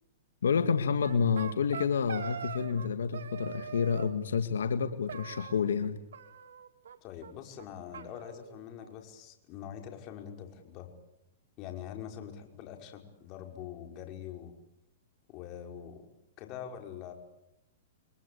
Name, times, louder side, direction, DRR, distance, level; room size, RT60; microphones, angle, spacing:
voice 1, 0.4-6.0, left 6 dB, 90° left, 9 dB, 1.9 m, -29 dB
sound 1, 1.0-2.9 3.1-4.2 5.1-5.9 6.1-7.0 7.2-7.3 7.6-7.7 7.9-9.0, right 7 dB, 80° right, 3.4 m, -43 dB
voice 2, 7.0-10.9 11.6-14.5 15.3-16.1 16.4-17.1, left 9 dB, 35° left, 4 dB, 5.5 m, -44 dB
29.5 x 23.5 x 8.5 m, 0.88 s
hypercardioid pair, 135°, 0 cm